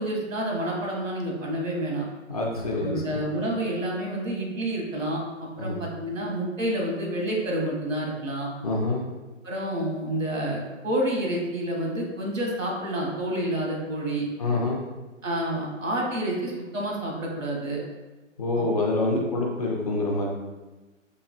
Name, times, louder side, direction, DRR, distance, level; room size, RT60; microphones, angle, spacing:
voice 1, 0.0-2.0 2.7-8.5 9.4-14.2 15.2-17.8 18.6-18.7 18.9-19.2, right 1 dB, 85° right, -1 dB, 1.1 m, -29 dB
voice 2, 2.3-3.2 5.6-5.8 8.6-9.0 14.4-14.8 18.4-20.3, left 2 dB, 30° left, -2 dB, 0.4 m, -26 dB
3.3 x 3.1 x 2.4 m, 1.2 s
figure-of-eight pair, 125°, 38 cm